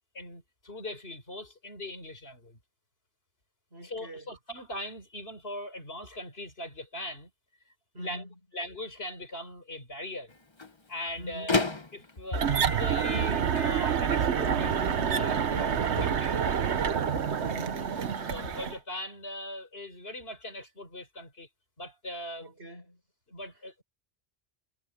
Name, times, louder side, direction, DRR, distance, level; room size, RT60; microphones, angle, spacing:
voice 1, 0.1-2.6 3.8-7.3 8.0-8.2 8.5-10.3 10.9-11.6 11.9-16.6 18.3-21.5 21.8-22.4 23.3-23.8, left 1 dB, 65° left, 4.7 m, -40 dB
voice 2, 3.7-4.3 7.9-8.4 11.2-11.6 17.4-17.9 22.4-23.0, equal, 75° right, 5.6 m, -44 dB
Microwave oven, 10.3-18.5, left 3 dB, 25° left, 1.3 m, -37 dB
sound 1, 12.3-18.8, right 8 dB, 90° right, 1.3 m, -28 dB
omnidirectional pair, 1.1 m